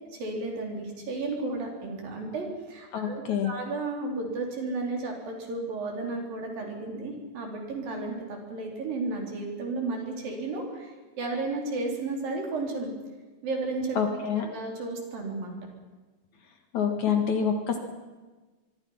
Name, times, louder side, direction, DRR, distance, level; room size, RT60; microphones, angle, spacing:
voice 1, 0.1-10.9 11.2-12.9 13.4-14.0 14.3-15.5, right 3 dB, 65° right, 1 dB, 5.5 m, -33 dB
voice 2, 2.9-3.5 14.0-14.5 16.7-17.8, left 7 dB, 55° left, 5 dB, 2.9 m, -26 dB
24.5 x 23.5 x 5.8 m, 1.3 s
omnidirectional pair, 4.4 m